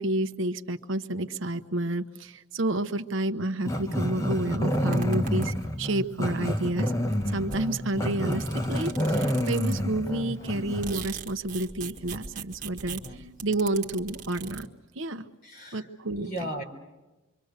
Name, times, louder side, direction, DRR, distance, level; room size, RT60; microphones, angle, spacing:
voice 1, 0.0-6.9 7.3-13.0 13.4-14.7 14.9-15.2 15.7-16.3, right 1 dB, 65° right, 8 dB, 1.0 m, -30 dB
Growling, 3.6-11.0, equal, 15° left, 1.0 m, -28 dB
sound 1, 4.9-5.9 6.8-6.9 7.0-10.0 10.4-14.7, right 6 dB, 35° right, 1.5 m, -41 dB
voice 2, 15.4-15.9 16.2-16.6, right 1 dB, 45° left, 4 dB, 3.8 m, -37 dB
26.5 x 24.0 x 6.6 m, 1.1 s
head